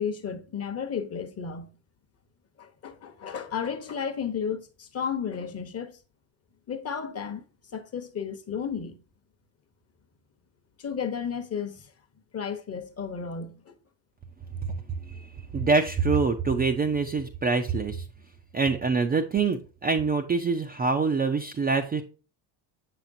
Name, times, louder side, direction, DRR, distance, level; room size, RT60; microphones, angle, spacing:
voice 1, 0.0-1.7 2.6-6.0 6.7-7.4 7.7-9.0 10.8-11.9 12.3-13.7, left 7 dB, 30° left, 0.9 m, -33 dB
voice 2, 15.5-18.0 18.5-22.0, right 4 dB, 20° right, 0.4 m, -25 dB
7.0 x 5.9 x 2.6 m
supercardioid pair, 90°, 50 cm